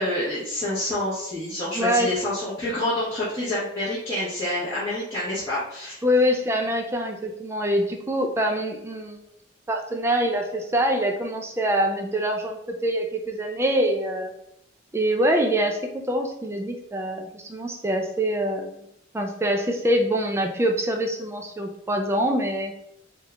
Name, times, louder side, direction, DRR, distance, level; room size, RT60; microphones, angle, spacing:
voice 1, 0.0-6.0, left 1 dB, 15° left, -13 dB, 1.1 m, -27 dB
voice 2, 1.7-2.1 6.0-9.2 9.7-14.3 14.9-18.8 19.1-22.7, equal, 15° right, 2 dB, 0.4 m, -24 dB
3.5 x 2.4 x 3.3 m, 0.78 s
head